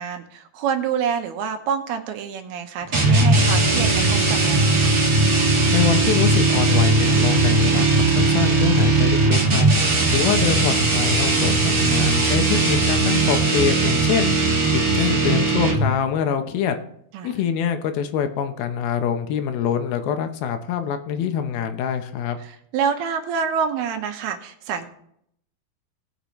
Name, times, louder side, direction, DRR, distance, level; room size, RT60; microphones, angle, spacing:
voice 1, 0.0-4.9 17.1-17.3 22.4-24.9, right 7 dB, 85° right, 5 dB, 3.1 m, -27 dB
sound 1, 2.9-16.0, right 3 dB, 35° right, 1.9 m, -18 dB
voice 2, 5.7-7.9 8.2-9.7 10.1-14.3 14.9-16.8 17.2-22.4, left 8 dB, 75° left, 7 dB, 2.7 m, -24 dB
19.0 x 6.8 x 3.1 m, 0.69 s
omnidirectional pair, 4.5 m